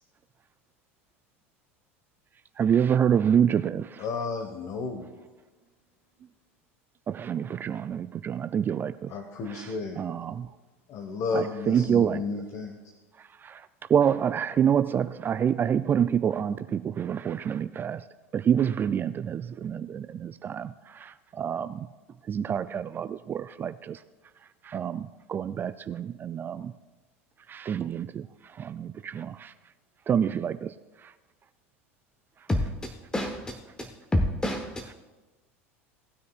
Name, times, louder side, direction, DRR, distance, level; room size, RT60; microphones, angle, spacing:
voice 1, 2.6-4.0 7.1-9.1 10.0-10.5 11.3-12.2 13.4-13.6 13.9-18.0 18.3-21.9 22.3-24.0 24.6-26.7 27.5-28.3 28.5-29.5 30.1-30.7 31.0-31.1, right 8 dB, 30° right, 0.3 m, -27 dB
voice 2, 4.0-5.2 9.1-10.1 10.9-12.7, left 4 dB, 50° left, 1.3 m, -32 dB
voice 3, 32.5-34.9, left 1 dB, 10° left, 0.9 m, -29 dB
18.0 x 9.3 x 2.4 m
hypercardioid pair, 85°, 7 cm